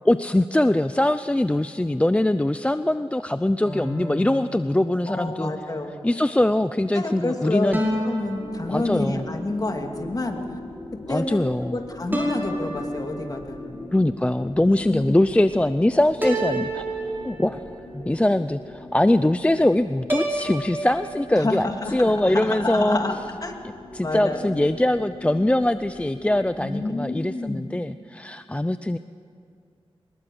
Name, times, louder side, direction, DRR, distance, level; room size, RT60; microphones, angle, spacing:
voice 1, 0.0-5.5 6.0-7.8 8.7-9.3 11.1-11.8 13.9-17.6 17.9-23.0 23.9-29.0, left 1 dB, 10° left, 12 dB, 0.5 m, -22 dB
sound 1, 3.6-5.3 7.7-9.4 12.1-13.6 16.2-17.8 20.1-21.0, right 1 dB, 20° right, 5.4 m, -30 dB
voice 2, 5.1-5.9 6.9-7.7 8.0-10.4 11.1-11.5 11.7-13.7 14.8-15.2 21.3-23.2 23.4-23.5 24.0-24.5 26.6-27.8, left 2 dB, 40° left, 3 dB, 2.6 m, -28 dB
sound 2, 8.3-26.7, left 1 dB, 65° left, 6.3 m, -41 dB
23.5 x 21.0 x 7.9 m, 2.5 s
wide cardioid pair, 90°, 10 cm